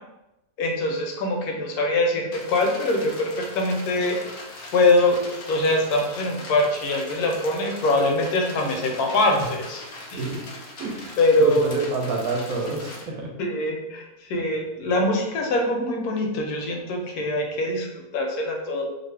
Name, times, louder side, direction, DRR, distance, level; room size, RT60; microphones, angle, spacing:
voice 1, 0.6-4.2 4.7-9.8 10.1-10.2 11.2-11.7 13.4-18.8, left 2 dB, 85° left, 2 dB, 1.1 m, -23 dB
sound 1, 2.3-13.0, left 2 dB, 60° left, 0.6 m, -40 dB
voice 2, 10.1-10.4 10.8-13.3, right 3 dB, 70° right, 1 dB, 1.0 m, -29 dB
2.6 x 2.5 x 3.2 m, 0.94 s
omnidirectional pair, 1.6 m